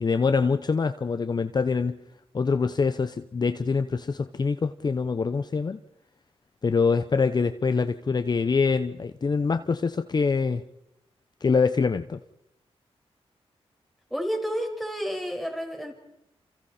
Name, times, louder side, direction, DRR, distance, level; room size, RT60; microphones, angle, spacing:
voice 1, 0.0-2.0 2.3-5.8 6.6-10.6 11.4-12.2, left 5 dB, 40° left, 10 dB, 0.9 m, -24 dB
voice 2, 14.1-15.9, equal, ahead, 1 dB, 5.5 m, -30 dB
28.5 x 28.0 x 4.4 m, 0.86 s
wide cardioid pair, 95°, 11 cm